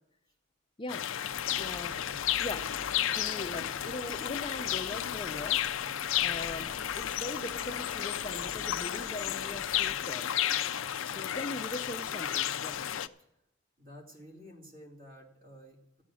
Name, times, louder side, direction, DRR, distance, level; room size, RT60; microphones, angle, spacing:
sound 1, 0.9-13.1, left 11 dB, 65° left, 0.5 m, -33 dB
Animal, 1.3-5.8 6.1-10.0, left 1 dB, 15° right, 3.0 m, -52 dB
voice 1, 1.6-2.0 2.4-2.6 3.1-5.6 6.2-10.3 11.0-12.8, left 2 dB, 25° left, 8 dB, 0.6 m, -40 dB
voice 2, 13.8-16.0, equal, 45° right, -1 dB, 3.0 m, -51 dB
14.0 x 9.3 x 6.3 m, 0.82 s
head